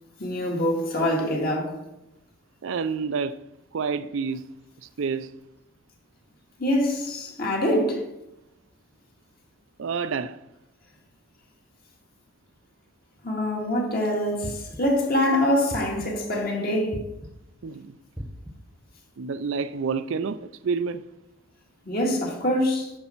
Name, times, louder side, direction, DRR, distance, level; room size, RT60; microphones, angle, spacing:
voice 1, 0.2-1.8 6.6-8.1 13.2-17.0 21.9-22.9, left 1 dB, 45° left, 2.1 m, -24 dB
voice 2, 2.6-3.4 3.7-4.5 5.0-5.3 9.8-10.4 17.6-18.0 19.2-21.0, right 5 dB, 65° right, 0.4 m, -28 dB
sound 1, 14.4-15.1 15.7-16.3 16.9-17.6 18.2-18.8, equal, 5° right, 1.0 m, -39 dB
9.6 x 6.7 x 4.5 m
head